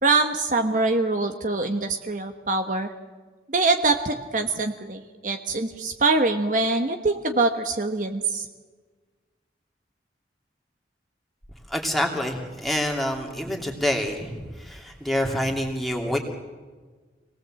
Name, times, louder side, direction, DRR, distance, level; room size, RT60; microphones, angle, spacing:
voice 1, 0.0-2.9 3.5-8.5, right 3 dB, 45° right, 6 dB, 1.2 m, -24 dB
voice 2, 11.7-16.2, equal, ahead, 0 dB, 2.8 m, -27 dB
26.5 x 19.0 x 7.7 m, 1.4 s
head